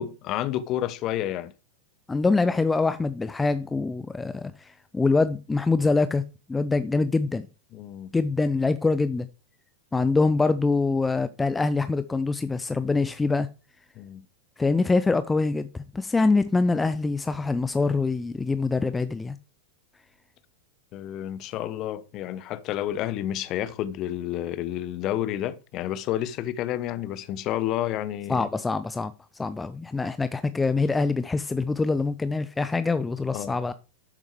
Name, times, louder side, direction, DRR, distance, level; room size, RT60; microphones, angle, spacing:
voice 1, 0.0-1.5 7.7-8.1 14.0-14.2 20.9-28.5 33.3-33.6, left 12 dB, 35° left, 0.9 m, -30 dB
voice 2, 2.1-6.2 6.5-7.5 8.1-9.3 9.9-13.5 14.6-19.4 28.3-29.1 29.4-33.7, left 3 dB, 10° left, 0.5 m, -24 dB
12.5 x 7.3 x 3.2 m
figure-of-eight pair, 90°, 0 cm